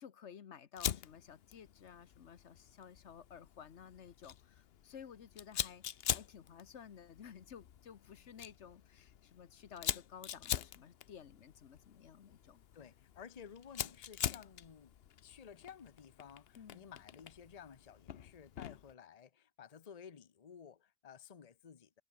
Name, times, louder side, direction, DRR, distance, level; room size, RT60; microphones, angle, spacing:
voice 1, 0.0-12.6 16.5-16.9, left 8 dB, 80° left, 1.4 m, -54 dB
Fire, 0.8-18.9, left 9 dB, 65° left, 0.9 m, -44 dB
voice 2, 12.7-15.0 15.2-22.0, left 7 dB, 35° left, 0.9 m, -54 dB
omnidirectional pair, 1.2 m